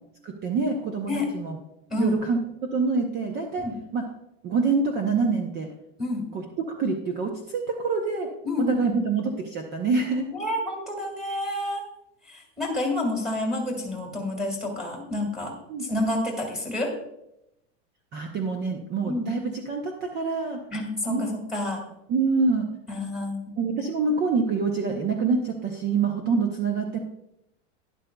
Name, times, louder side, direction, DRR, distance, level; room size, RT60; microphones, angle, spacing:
voice 1, 0.2-1.6 2.0-2.4 2.7-3.7 3.9-4.1 4.4-5.7 6.3-8.3 8.7-10.3 15.7-15.8 18.1-20.6 21.1-21.2 22.1-22.7 23.6-27.0, right 4 dB, 30° right, 3 dB, 0.7 m, -26 dB
voice 2, 1.9-2.2 3.6-3.7 6.0-6.3 8.4-9.0 10.3-11.8 12.3-15.5 15.8-16.9 19.1-19.3 20.7-21.8 22.9-23.4, left 1 dB, ahead, 0 dB, 1.9 m, -29 dB
11.5 x 10.5 x 2.3 m, 0.84 s
supercardioid pair, 160°, 35 cm